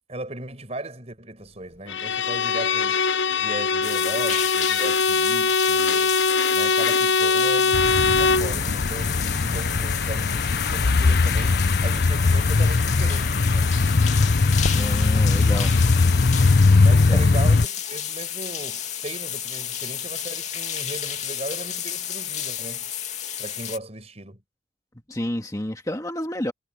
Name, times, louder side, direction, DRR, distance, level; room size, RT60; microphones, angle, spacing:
voice 1, 0.1-3.1 3.4-6.2 6.5-13.7 16.8-22.9 23.4-24.4, right 1 dB, 35° right, 5.3 m, -37 dB
Bowed string instrument, 1.9-8.6, left 4 dB, 75° left, 1.0 m, -22 dB
sound 1, 3.8-23.8, left 9 dB, 40° left, 2.7 m, -31 dB
sound 2, 7.7-17.7, left 3 dB, 55° left, 0.7 m, -20 dB
voice 2, 14.7-15.7 17.1-17.2 25.1-26.5, left 1 dB, 20° left, 1.8 m, -30 dB
head